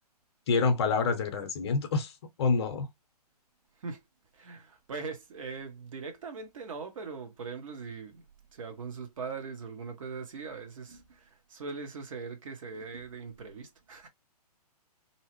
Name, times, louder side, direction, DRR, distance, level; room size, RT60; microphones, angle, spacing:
voice 1, 0.5-2.1 2.4-2.9, left 4 dB, 40° left, 0.7 m, -27 dB
voice 2, 4.3-8.2 8.5-14.1, right 5 dB, 55° right, 0.9 m, -41 dB
2.7 x 2.0 x 3.0 m
figure-of-eight pair, 130°, 21 cm